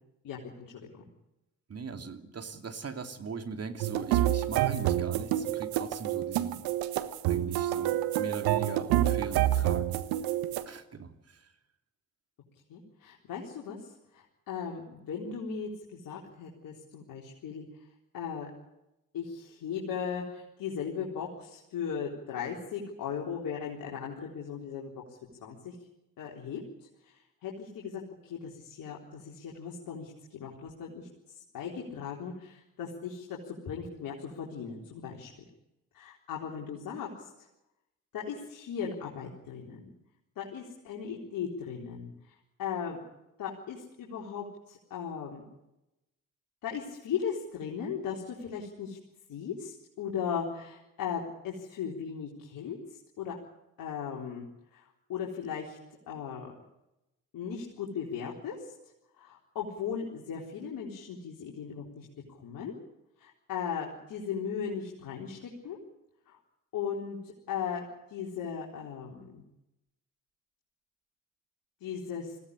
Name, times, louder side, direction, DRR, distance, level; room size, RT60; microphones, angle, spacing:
voice 1, 0.2-1.1 12.7-17.7 18.1-18.5 19.1-24.9 25.4-25.7 26.2-26.6 27.0-31.1 31.5-35.3 35.9-37.3 38.1-39.9 40.4-42.1 42.6-43.0 43.4-45.4 46.6-49.0 49.3-52.8 53.2-53.4 53.8-54.5 54.7-55.8 56.1-56.5 57.3-58.7 59.2-62.7 63.2-65.8 66.3-66.4 66.7-69.4 71.8-72.4, left 7 dB, 65° left, -2 dB, 4.2 m, -37 dB
voice 2, 1.7-6.6 7.3-9.9 10.6-11.5, right 5 dB, 40° right, 7 dB, 2.9 m, -40 dB
sound 1, 3.8-10.6, right 13 dB, 75° right, 1.4 m, -28 dB
21.0 x 16.5 x 9.9 m, 0.91 s
hypercardioid pair, 55°, 37 cm